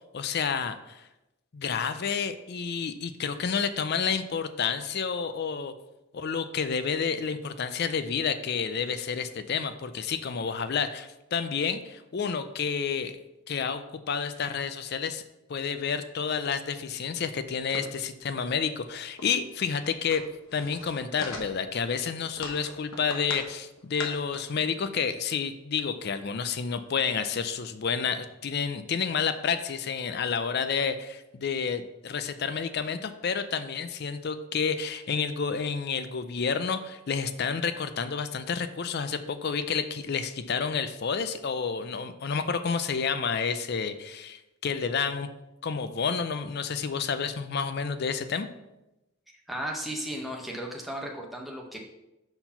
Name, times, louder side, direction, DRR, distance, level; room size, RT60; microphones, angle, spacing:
voice 1, 0.1-1.0 1.5-5.7 6.1-13.2 13.5-15.2 15.5-20.2 20.5-45.3 45.6-48.5, left 6 dB, 50° left, 11 dB, 0.4 m, -30 dB
sound 1, 17.7-18.0 18.4-18.5 18.8-18.9 19.2-19.3 19.5-21.8 22.3-23.5 23.8-24.4, left 2 dB, 75° left, 1.1 m, -40 dB
voice 2, 49.5-51.8, right 1 dB, ahead, -1 dB, 0.8 m, -35 dB
5.8 x 4.5 x 5.6 m, 0.94 s
head